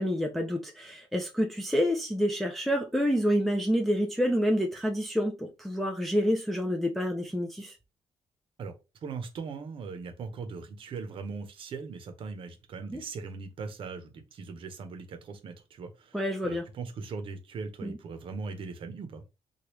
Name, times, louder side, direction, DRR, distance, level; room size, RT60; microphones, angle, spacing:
voice 1, 0.0-7.8 12.9-13.0 16.1-16.6 17.8-18.0, equal, ahead, 0.4 m, -28 dB
voice 2, 9.0-19.2, right 4 dB, 60° right, 0.7 m, -39 dB
3.2 x 2.3 x 3.0 m
cardioid pair, 135°, 10 cm